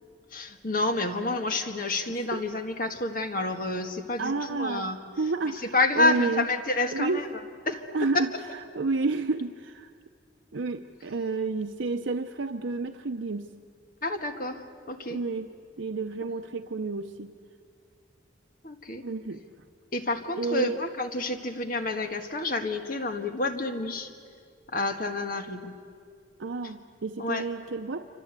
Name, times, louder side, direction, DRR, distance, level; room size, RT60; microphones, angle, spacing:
voice 1, 0.3-5.0 5.6-7.3 7.7-7.8 8.1-8.4 14.0-15.2 18.6-19.0 19.9-24.1 24.7-25.7 27.2-27.5, left 2 dB, 45° left, 6 dB, 1.6 m, -29 dB
voice 2, 4.2-4.9 5.2-6.5 6.9-7.2 7.9-8.3 8.7-9.9 10.5-13.5 15.1-15.5 15.8-17.3 19.0-19.4 20.4-20.8 26.4-28.1, right 3 dB, 80° right, 6 dB, 0.7 m, -30 dB
27.0 x 26.0 x 8.2 m, 2.1 s
head